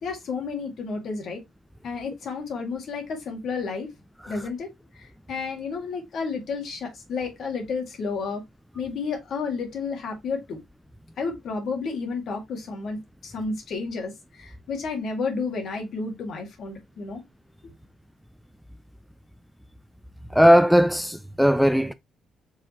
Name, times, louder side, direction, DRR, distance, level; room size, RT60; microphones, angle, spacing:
voice 1, 0.0-1.4 1.8-3.9 4.3-4.7 4.9-8.4 8.7-10.6 11.2-17.2, left 4 dB, 65° left, 1.9 m, -31 dB
voice 2, 20.3-21.9, equal, ahead, 0.3 m, -18 dB
4.8 x 3.7 x 2.9 m
cardioid pair, 90°, 0 cm